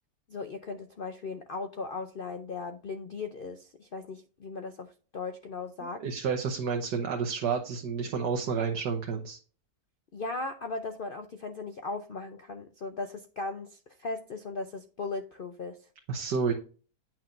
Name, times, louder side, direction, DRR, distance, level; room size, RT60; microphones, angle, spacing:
voice 1, 0.3-6.0 10.1-15.9, left 3 dB, 65° left, 7 dB, 0.5 m, -37 dB
voice 2, 5.8-9.4 16.1-16.5, right 5 dB, 90° right, 2 dB, 1.6 m, -30 dB
8.9 x 6.0 x 2.6 m, 0.38 s
omnidirectional pair, 1.8 m